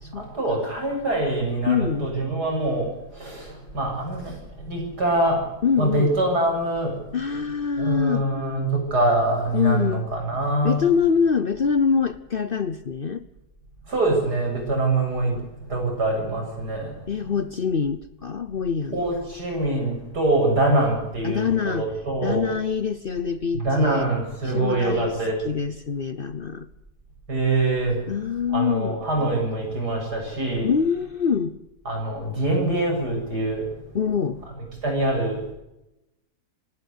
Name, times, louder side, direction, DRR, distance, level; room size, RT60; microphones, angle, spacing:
voice 1, 0.2-4.4 4.7-5.4 5.8-6.9 7.8-10.8 13.9-15.3 15.7-16.9 18.9-22.4 23.5-25.4 27.3-28.0 28.5-30.7 31.8-33.6 34.8-35.4, right 2 dB, 85° right, 0 dB, 8.2 m, -24 dB
voice 2, 1.6-2.1 5.6-6.1 7.1-8.3 9.5-10.0 10.6-13.3 15.3-15.5 17.1-19.1 21.2-21.9 22.2-24.1 24.4-25.1 25.4-26.7 28.1-29.0 30.6-31.6 33.9-34.5, left 6 dB, 45° left, 13 dB, 0.8 m, -24 dB
26.5 x 12.5 x 8.2 m, 0.91 s
omnidirectional pair, 1.7 m